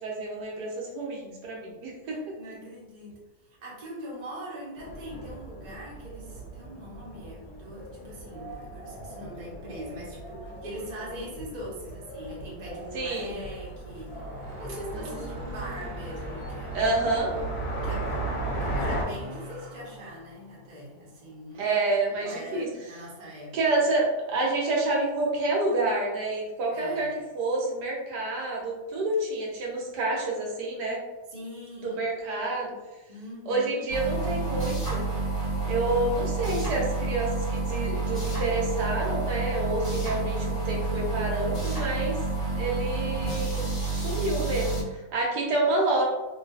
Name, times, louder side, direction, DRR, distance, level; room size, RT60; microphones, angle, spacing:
voice 1, 0.0-2.2 12.9-13.4 14.9-15.7 16.7-17.3 21.6-22.7 23.5-31.0 31.8-32.7 33.5-35.0 35.6-42.2 42.5-46.0, right 2 dB, 80° right, -2 dB, 1.3 m, -28 dB
voice 2, 2.0-3.2 3.6-17.1 17.8-18.2 18.6-21.8 22.1-23.5 26.7-27.1 31.3-32.0 33.1-33.8, equal, 35° right, -5 dB, 0.7 m, -41 dB
sound 1, 4.8-19.0, right 2 dB, 75° left, 1.1 m, -37 dB
sound 2, 13.9-21.3, equal, 60° right, 1.0 m, -41 dB
sound 3, 33.9-44.8, right 3 dB, 30° left, 1.1 m, -29 dB
3.1 x 2.4 x 2.3 m, 1.1 s
omnidirectional pair, 1.8 m